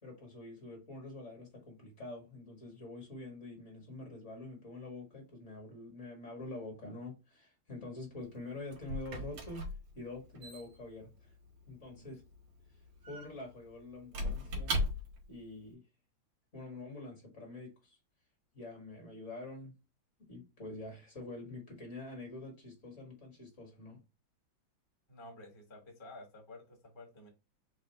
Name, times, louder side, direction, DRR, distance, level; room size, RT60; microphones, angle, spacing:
voice 1, 0.0-9.6 9.9-11.3 11.7-12.2 13.1-14.8 15.3-15.8 16.5-18.0 18.5-19.7 20.3-24.0, left 2 dB, 35° left, 1.7 m, -46 dB
Squeak / Wood, 8.2-15.4, equal, 85° right, 2.2 m, -40 dB
voice 2, 25.1-27.3, left 2 dB, 15° left, 1.0 m, -52 dB
4.6 x 2.4 x 4.2 m
omnidirectional pair, 2.3 m